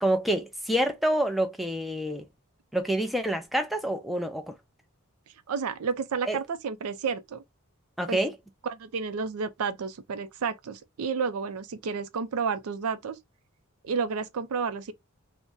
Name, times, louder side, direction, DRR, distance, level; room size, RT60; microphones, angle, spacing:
voice 1, 0.0-2.3 2.7-4.5 6.3-6.4 8.0-8.4, right 1 dB, ahead, 0.4 m, -27 dB
voice 2, 5.5-7.4 8.1-8.2 8.6-13.2 13.8-14.9, right 5 dB, 75° right, 0.4 m, -31 dB
2.6 x 2.1 x 3.4 m
head